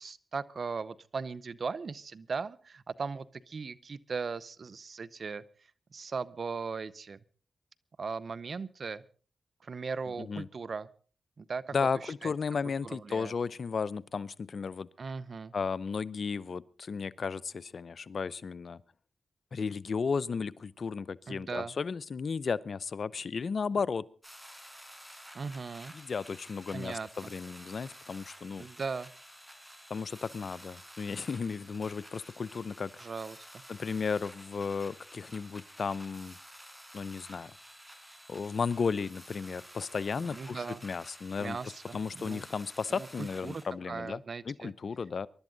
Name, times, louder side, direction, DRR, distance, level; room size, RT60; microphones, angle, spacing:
voice 1, 0.0-5.4 5.9-7.2 8.0-9.0 9.6-10.9 11.4-11.7 12.0-12.3 12.8-13.3 15.0-15.5 21.3-21.7 25.3-25.9 26.7-27.3 28.6-29.1 33.0-33.4 40.3-40.8 41.4-42.4 42.9-44.7, right 5 dB, 60° right, 19 dB, 0.8 m, -38 dB
voice 2, 11.7-14.9 15.5-18.8 19.5-24.1 25.9-28.7 29.9-32.9 33.7-36.4 36.9-37.5 38.3-41.6 41.9-44.2 44.5-45.3, left 5 dB, 65° left, 21 dB, 0.6 m, -34 dB
sound 1, 24.2-43.6, equal, 5° right, 5.8 m, -51 dB
24.0 x 12.0 x 3.9 m, 0.40 s
supercardioid pair, 45°, 0 cm